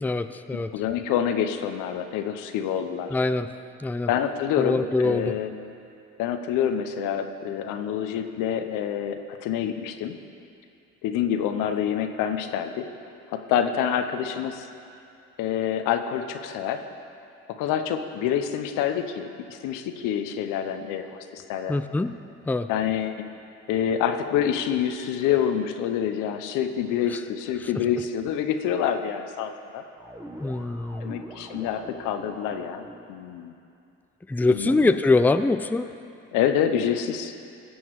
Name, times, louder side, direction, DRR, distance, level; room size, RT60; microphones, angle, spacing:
voice 1, 0.0-0.7 3.1-3.5 3.8-4.1 4.6-5.4 21.7-22.1 22.5-22.7 27.1-27.2 27.6-27.7 30.4-31.1 34.3-35.9, left 3 dB, 5° left, 10 dB, 0.4 m, -23 dB
voice 2, 0.7-3.1 4.1-5.5 6.2-10.2 11.0-12.9 13.3-14.7 15.4-16.8 17.6-21.7 22.7-23.3 23.7-29.8 31.0-32.8 33.1-33.5 34.5-35.0 36.3-37.3, left 9 dB, 80° left, 8 dB, 0.8 m, -27 dB
sound 1, 30.0-33.1, equal, 10° right, 1.4 m, -43 dB
16.5 x 7.2 x 4.7 m, 2.6 s
supercardioid pair, 60°, 31 cm